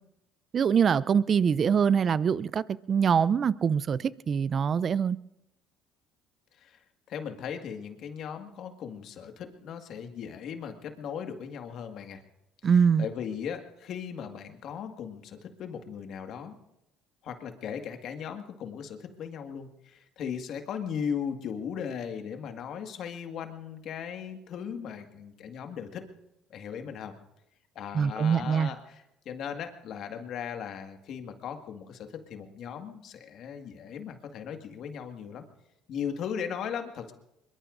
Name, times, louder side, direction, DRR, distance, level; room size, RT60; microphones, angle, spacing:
voice 1, 0.5-5.2 12.6-13.1 27.9-28.7, right 7 dB, 45° right, 0.5 m, -24 dB
voice 2, 7.1-12.2 13.0-16.6 17.2-26.0 26.5-27.1 27.8-35.5 35.9-37.1, left 7 dB, 60° left, 1.9 m, -37 dB
24.5 x 22.5 x 2.6 m
supercardioid pair, 70°, 0 cm